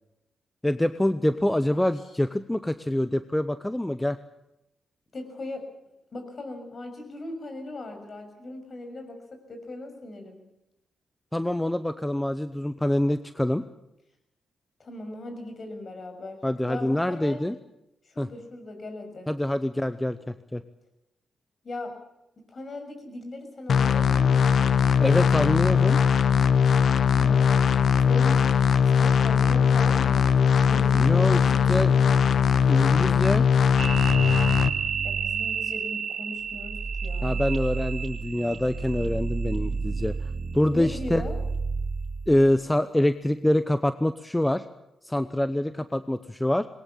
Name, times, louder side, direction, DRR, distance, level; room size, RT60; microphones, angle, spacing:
voice 1, 0.6-4.2 11.3-13.6 16.4-17.6 18.2-18.3 19.3-20.6 25.0-26.0 30.9-31.9 32.7-33.5 37.2-40.2 40.5-41.2 42.3-44.7 45.0-46.7, left 1 dB, 10° left, 12 dB, 0.9 m, -25 dB
voice 2, 5.1-5.6 6.1-10.4 14.8-16.4 16.6-17.4 18.0-19.3 21.6-21.9 22.5-24.8 27.1-28.4 28.9-31.1 31.5-32.2 35.0-37.4 40.7-41.4, left 2 dB, 45° left, 6 dB, 6.5 m, -39 dB
sound 1, 23.7-34.7, left 7 dB, 65° left, 0.8 m, -20 dB
sound 2, 33.8-42.4, right 5 dB, 40° right, 3.3 m, -30 dB
21.0 x 19.5 x 8.6 m, 0.88 s
cardioid pair, 85°, 0 cm